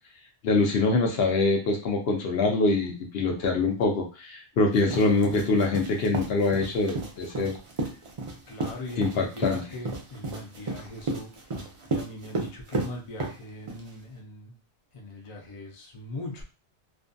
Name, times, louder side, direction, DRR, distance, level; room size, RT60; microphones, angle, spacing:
voice 1, 0.4-7.6 9.0-9.6, left 3 dB, 65° left, 1 dB, 0.8 m, -24 dB
sound 1, 4.7-13.9, right 2 dB, 55° right, 0.3 m, -33 dB
voice 2, 8.5-11.6 11.9-14.6 14.9-16.4, left 2 dB, 40° left, 0 dB, 0.5 m, -40 dB
2.5 x 2.2 x 2.5 m, 0.33 s
omnidirectional pair, 1.2 m